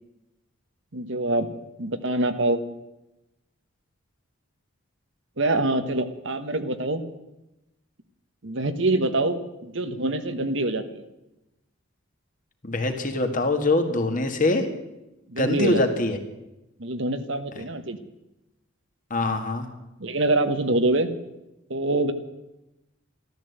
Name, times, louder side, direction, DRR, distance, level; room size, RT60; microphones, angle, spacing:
voice 1, 0.9-1.5 1.8-2.6 5.4-7.0 8.4-11.0 15.3-15.8 16.8-18.0 20.0-21.1 21.7-22.1, right 2 dB, 60° right, 9 dB, 1.3 m, -25 dB
voice 2, 12.6-14.7 15.4-16.2 19.1-19.7, left 2 dB, 40° left, 5 dB, 1.9 m, -23 dB
13.5 x 13.5 x 8.1 m, 0.94 s
head